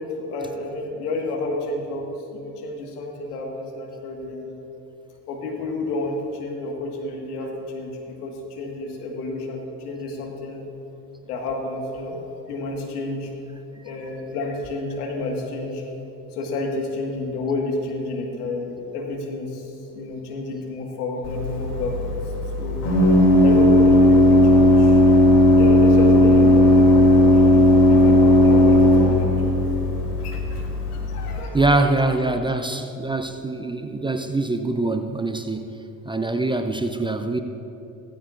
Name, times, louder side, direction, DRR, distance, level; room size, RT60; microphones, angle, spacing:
voice 1, 0.0-4.6 5.3-10.6 11.2-12.2 12.5-13.3 13.8-15.8 16.3-19.7 19.9-22.2 22.6-22.8 23.4-29.5 30.2-30.6 30.9-31.8, left 2 dB, 80° left, 1 dB, 1.8 m, -30 dB
Organ, 21.2-31.4, left 1 dB, 60° left, 3.1 m, -15 dB
voice 2, 31.5-35.7 36.1-37.4, right 2 dB, 10° right, 7 dB, 0.6 m, -24 dB
16.0 x 14.0 x 2.5 m, 3.0 s
hypercardioid pair, 60°, 45 cm